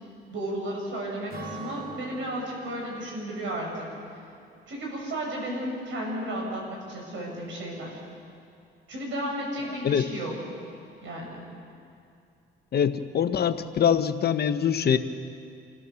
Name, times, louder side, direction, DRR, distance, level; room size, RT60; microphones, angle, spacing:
voice 1, 0.3-3.8 4.7-8.0 8.9-10.4 11.0-11.4, right 1 dB, 70° right, -1 dB, 6.9 m, -33 dB
Acoustic guitar / Strum, 1.3-4.9, right 3 dB, 50° right, 4.9 m, -44 dB
voice 2, 12.7-15.0, left 8 dB, 55° left, 9 dB, 1.0 m, -23 dB
28.0 x 14.0 x 7.0 m, 2.5 s
cardioid pair, 90°, 20 cm